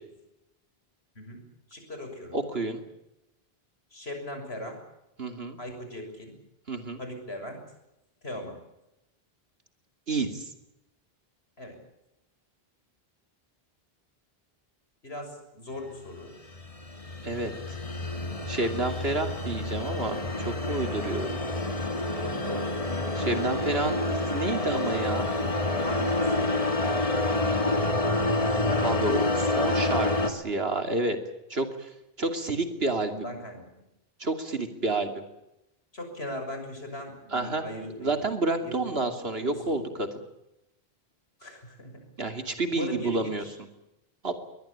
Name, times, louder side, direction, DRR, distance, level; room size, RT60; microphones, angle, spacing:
voice 1, 1.7-2.4 3.9-4.8 5.6-6.4 7.0-7.6 8.2-8.6 11.6-11.8 15.0-16.3 22.2-22.8 23.1-23.6 25.8-26.5 28.8-29.3 33.1-33.7 35.9-38.2 38.5-39.8 41.4-42.1 42.7-43.6, left 1 dB, 85° left, 5 dB, 6.8 m, -39 dB
voice 2, 2.3-2.8 5.2-5.6 6.7-7.0 10.1-10.5 17.2-17.5 18.5-21.4 23.2-25.3 28.8-31.2 31.5-31.9 32.2-33.1 34.2-35.2 37.3-37.6 38.0-40.1 42.2-43.7 44.2-44.3, right 2 dB, 75° right, 6 dB, 3.0 m, -29 dB
sound 1, 16.2-30.3, left 2 dB, 35° left, 2.3 m, -28 dB
23.0 x 20.0 x 8.7 m, 0.91 s
omnidirectional pair, 1.0 m